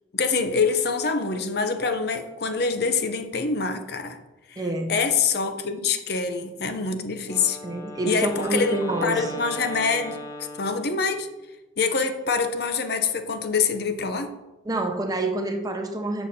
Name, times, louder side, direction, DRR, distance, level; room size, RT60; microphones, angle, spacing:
voice 1, 0.1-4.2 4.5-7.6 8.0-10.2 10.6-11.3 11.8-14.3, left 5 dB, 55° left, 8 dB, 0.7 m, -25 dB
voice 2, 4.6-5.0 7.6-9.3 14.7-16.3, right 2 dB, 20° right, 5 dB, 0.7 m, -27 dB
Wind instrument woodwind instrument, 7.2-11.3, left 1 dB, 20° left, 0.6 m, -38 dB
6.8 x 6.4 x 4.2 m, 1.0 s
head